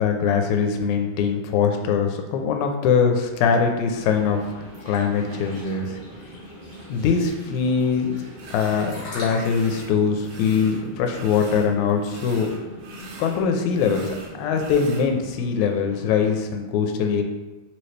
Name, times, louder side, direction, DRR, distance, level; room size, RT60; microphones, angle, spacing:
voice 1, 0.0-6.0 6.9-8.1 8.5-12.5 13.2-17.2, left 6 dB, 80° left, 4 dB, 1.9 m, -22 dB
sound 1, 3.9-16.4, equal, 60° right, 0.5 m, -42 dB
sound 2, 4.7-12.4, left 1 dB, 50° left, 1.3 m, -42 dB
sound 3, 8.4-8.9 9.3-9.9 10.2-11.7 12.0-15.1, right 3 dB, 75° right, 1.9 m, -43 dB
4.5 x 2.9 x 3.2 m, 1.2 s
omnidirectional pair, 3.5 m